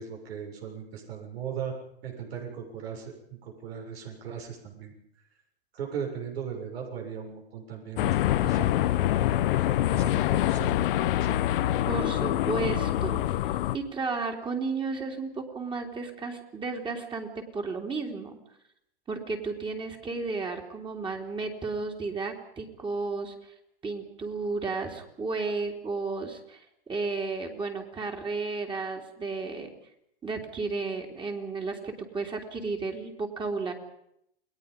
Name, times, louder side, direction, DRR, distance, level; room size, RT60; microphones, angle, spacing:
voice 1, 0.0-1.7 2.0-4.9 5.7-9.6 9.9-11.4, right 7 dB, 70° right, 2 dB, 7.1 m, -38 dB
sound 1, 8.0-13.8, left 13 dB, 55° left, 1.2 m, -25 dB
voice 2, 11.9-13.2 13.7-18.4 19.1-23.3 23.8-29.7 30.2-33.7, right 4 dB, 15° right, 2 dB, 3.5 m, -33 dB
29.5 x 20.5 x 5.4 m, 0.74 s
hypercardioid pair, 125°, 32 cm